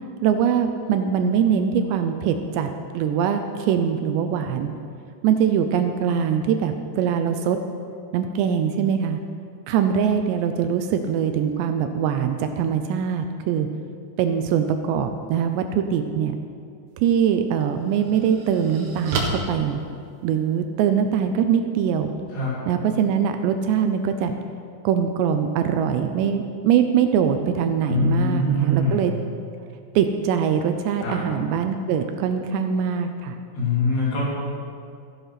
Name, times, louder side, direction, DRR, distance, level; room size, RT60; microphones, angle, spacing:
voice 1, 0.2-2.7 2.9-4.7 5.2-7.6 8.1-9.2 9.7-13.7 14.2-16.4 17.0-19.8 20.2-22.1 22.7-24.3 24.8-29.1 30.0-33.4, right 8 dB, 80° right, 7 dB, 2.7 m, -22 dB
sound 1, 16.9-17.0 17.6-20.6, right 2 dB, 60° right, 2.7 m, -32 dB
voice 2, 27.8-29.0 31.0-31.2 33.5-34.3, left 1 dB, 65° left, -6 dB, 5.3 m, -23 dB
14.0 x 10.0 x 5.7 m, 2.3 s
omnidirectional pair, 5.2 m